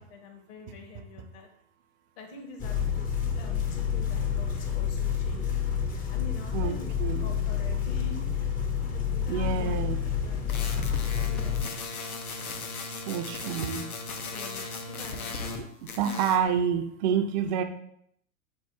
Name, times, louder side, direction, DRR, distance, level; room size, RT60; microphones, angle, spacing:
voice 1, 0.0-1.5 2.2-8.5 8.9-11.7 14.3-15.4, left 4 dB, 45° left, 3 dB, 0.9 m, -46 dB
sound 1, 2.6-11.6, left 7 dB, 20° left, 0.5 m, -29 dB
voice 2, 6.5-7.4 9.3-10.0 13.0-13.8 15.6-17.6, right 7 dB, 35° right, 8 dB, 0.4 m, -28 dB
sound 2, 10.5-15.6 15.9-16.4, left 3 dB, 85° left, 0.7 m, -37 dB
5.4 x 2.4 x 3.5 m, 0.71 s
figure-of-eight pair, 95°, 42 cm